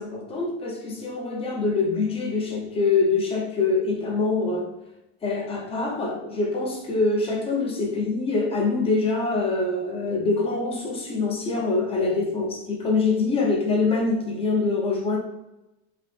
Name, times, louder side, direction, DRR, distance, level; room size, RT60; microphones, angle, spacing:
voice 1, 0.0-4.7 5.2-15.2, left 3 dB, 15° left, 0 dB, 0.5 m, -24 dB
2.8 x 2.0 x 3.2 m, 0.94 s
supercardioid pair, 145°, 33 cm